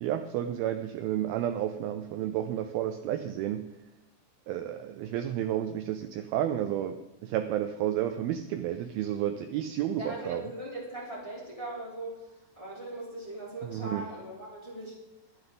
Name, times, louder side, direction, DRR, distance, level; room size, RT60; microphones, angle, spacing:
voice 1, 0.0-3.7 4.5-10.5 13.6-14.1, right 11 dB, 80° right, 9 dB, 2.3 m, -31 dB
voice 2, 10.0-15.0, right 1 dB, 10° left, -5 dB, 2.8 m, -40 dB
21.5 x 8.0 x 3.9 m, 0.98 s
omnidirectional pair, 4.8 m